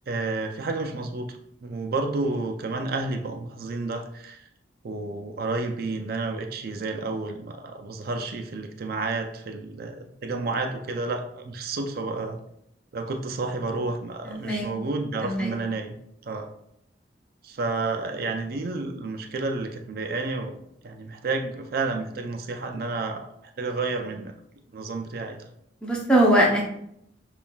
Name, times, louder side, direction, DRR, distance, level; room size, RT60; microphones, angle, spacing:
voice 1, 0.1-1.3 1.6-4.5 4.8-12.4 12.9-15.9 16.2-16.5 17.4-20.6 20.8-23.3 23.6-24.3 24.7-25.4, right 3 dB, 55° right, 5 dB, 0.4 m, -30 dB
voice 2, 14.3-14.7 15.2-15.5 25.8-26.7, right 1 dB, 5° left, -3 dB, 0.6 m, -21 dB
7.1 x 2.4 x 2.2 m, 0.75 s
head